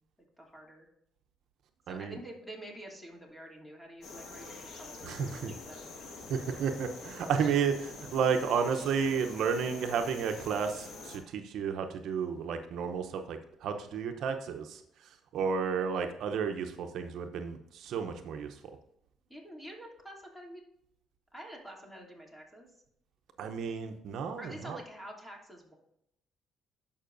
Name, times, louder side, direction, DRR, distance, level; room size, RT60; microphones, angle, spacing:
voice 1, 0.4-0.9 1.9-5.9 19.3-20.6 21.3-22.7 24.4-25.7, right 1 dB, 10° left, -1 dB, 2.8 m, -48 dB
voice 2, 1.9-2.2 5.0-5.5 6.3-14.8 15.3-18.6 23.4-24.8, right 6 dB, 75° right, 6 dB, 0.7 m, -32 dB
sound 1, 4.0-11.2, left 3 dB, 65° left, 1.7 m, -46 dB
11.0 x 5.6 x 2.6 m, 0.76 s
cardioid pair, 80°, 0 cm